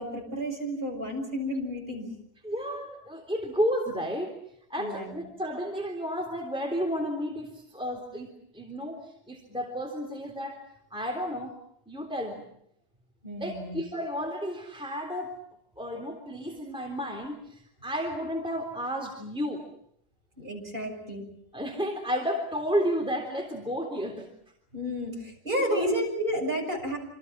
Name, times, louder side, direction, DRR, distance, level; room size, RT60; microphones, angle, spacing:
voice 1, 0.0-2.1 4.8-5.2 13.2-13.8 20.4-21.2 24.7-27.0, equal, 30° right, 1 dB, 7.0 m, -31 dB
voice 2, 2.4-4.3 4.7-10.6 10.9-11.6 11.9-12.5 13.4-15.3 15.8-19.6 21.5-24.3 25.7-25.9, equal, 5° right, 1 dB, 3.4 m, -32 dB
27.5 x 27.0 x 6.1 m, 0.71 s
omnidirectional pair, 1.8 m